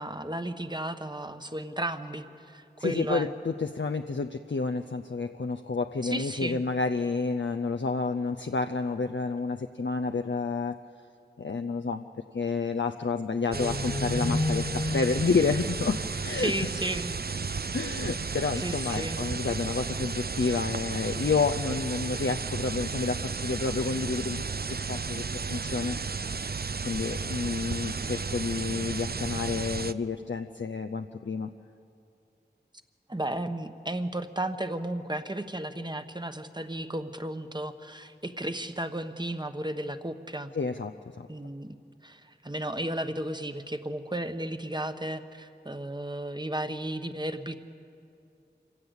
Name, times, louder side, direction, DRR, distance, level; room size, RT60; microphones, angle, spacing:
voice 1, 0.0-3.3 6.0-6.6 16.4-17.1 18.6-19.2 33.1-40.5 41.3-41.8 42.0-47.6, right 1 dB, 25° right, 9 dB, 1.1 m, -34 dB
voice 2, 2.8-10.8 11.4-12.1 12.3-16.5 17.7-24.4 24.9-26.0 26.8-31.5 40.5-41.3, left 4 dB, 80° left, 7 dB, 0.6 m, -30 dB
sound 1, 13.5-16.9, left 2 dB, 30° left, 0.5 m, -32 dB
sound 2, 13.5-29.9, right 4 dB, 55° right, 0.5 m, -33 dB
26.0 x 16.5 x 8.1 m, 2.6 s
wide cardioid pair, 40°, 19 cm